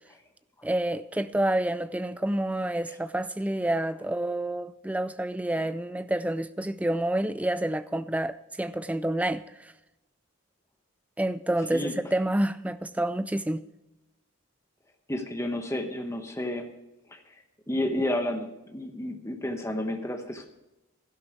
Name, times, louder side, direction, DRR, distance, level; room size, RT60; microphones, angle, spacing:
voice 1, 0.6-9.7 11.2-13.6, right 1 dB, 5° right, 0.3 m, -28 dB
voice 2, 15.1-16.7 17.1-17.2 17.7-20.5, left 1 dB, 15° left, 1.0 m, -31 dB
12.0 x 11.5 x 4.6 m
head